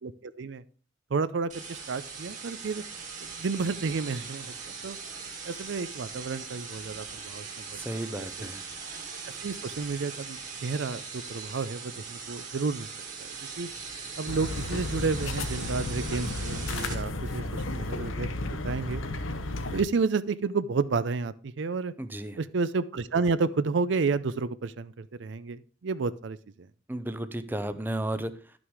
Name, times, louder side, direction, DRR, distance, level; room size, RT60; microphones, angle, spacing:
voice 1, 0.0-0.6 1.1-2.8 3.3-4.5 4.8-5.0 5.4-7.5 7.7-7.8 8.2-8.5 9.4-12.9 13.6-13.7 14.2-19.0 19.7-21.9 22.4-26.7, right 4 dB, 65° right, 16 dB, 0.5 m, -31 dB
sound 1, 1.5-16.9, right 5 dB, 40° right, 2.2 m, -40 dB
voice 2, 7.7-8.6 22.0-22.4 26.9-28.6, right 1 dB, 10° right, 11 dB, 0.5 m, -34 dB
sound 2, 14.3-19.8, left 2 dB, 80° left, 0.9 m, -33 dB
11.0 x 6.1 x 4.8 m, 0.40 s
head